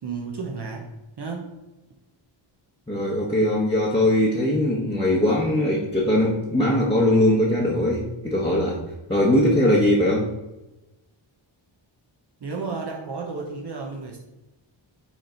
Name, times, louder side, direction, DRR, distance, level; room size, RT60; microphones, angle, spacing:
voice 1, 0.0-1.5 12.4-14.2, right 4 dB, 55° right, 0 dB, 0.9 m, -32 dB
voice 2, 2.9-8.8 9.1-10.3, left 1 dB, 10° left, -5 dB, 0.9 m, -20 dB
6.0 x 4.3 x 4.4 m, 1.0 s
wide cardioid pair, 120°, 49 cm